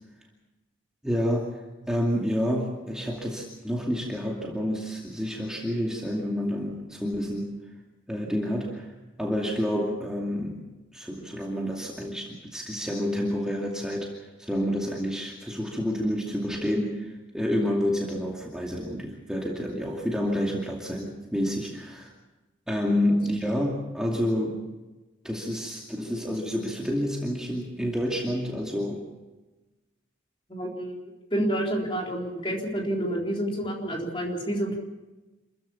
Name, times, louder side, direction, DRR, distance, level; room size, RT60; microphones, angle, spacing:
voice 1, 1.0-1.5 1.9-7.5 8.1-8.9 9.2-10.6 10.9-14.1 14.4-22.1 22.7-24.7 25.2-29.0, equal, 5° right, -2 dB, 2.4 m, -29 dB
voice 2, 30.5-31.0 31.3-34.8, right 1 dB, 25° left, 0 dB, 3.8 m, -29 dB
27.5 x 15.0 x 7.1 m, 1.1 s
head